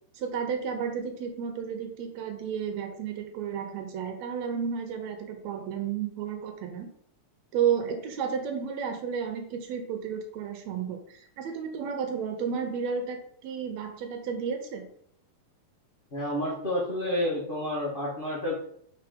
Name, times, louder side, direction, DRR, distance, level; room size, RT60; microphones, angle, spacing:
voice 1, 0.2-6.9 7.5-14.8, right 7 dB, 75° right, 5 dB, 2.0 m, -32 dB
voice 2, 16.1-18.5, left 1 dB, 65° left, -5 dB, 0.5 m, -29 dB
4.8 x 4.3 x 5.1 m, 0.66 s
omnidirectional pair, 3.5 m